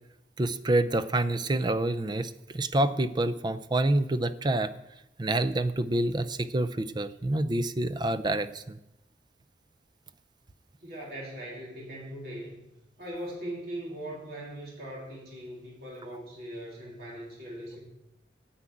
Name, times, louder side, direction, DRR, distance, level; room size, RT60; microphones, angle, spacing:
voice 1, 0.4-4.7 5.2-8.8, right 1 dB, 25° right, 12 dB, 0.5 m, -27 dB
voice 2, 10.8-12.6 13.0-17.9, right 1 dB, 60° right, -4 dB, 3.3 m, -40 dB
9.9 x 6.3 x 8.5 m, 0.92 s
head